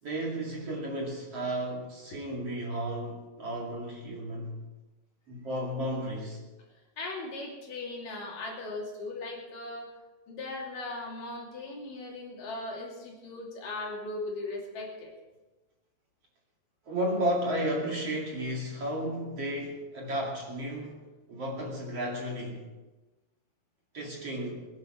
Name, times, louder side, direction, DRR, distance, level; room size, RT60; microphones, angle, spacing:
voice 1, 0.0-4.6 5.3-6.4 16.9-21.0 21.3-22.6 23.9-24.7, right 1 dB, 45° right, -2 dB, 3.1 m, -33 dB
voice 2, 7.0-9.9 10.3-15.1, left 2 dB, 60° left, -2 dB, 4.1 m, -38 dB
21.5 x 11.5 x 4.7 m, 1.2 s
omnidirectional pair, 4.5 m